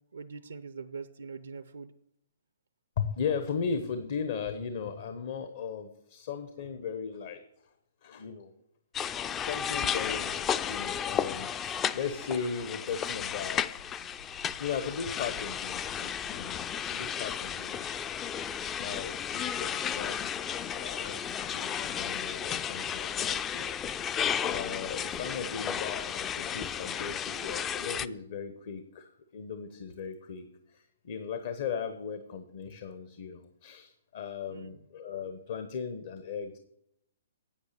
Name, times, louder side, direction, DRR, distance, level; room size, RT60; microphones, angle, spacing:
voice 1, 0.1-1.9 34.5-34.8, right 5 dB, 80° right, 12 dB, 0.5 m, -43 dB
voice 2, 3.0-7.4 8.0-8.5 9.3-13.7 14.6-17.9 18.8-21.2 21.5-23.8 24.4-36.6, left 6 dB, 55° left, 9 dB, 0.9 m, -37 dB
sound 1, 8.9-28.1, left 8 dB, 20° left, 0.4 m, -33 dB
sound 2, 11.6-20.0, left 4 dB, 85° left, 3.0 m, -56 dB
8.7 x 8.1 x 6.7 m, 0.79 s
hypercardioid pair, 125°, 0 cm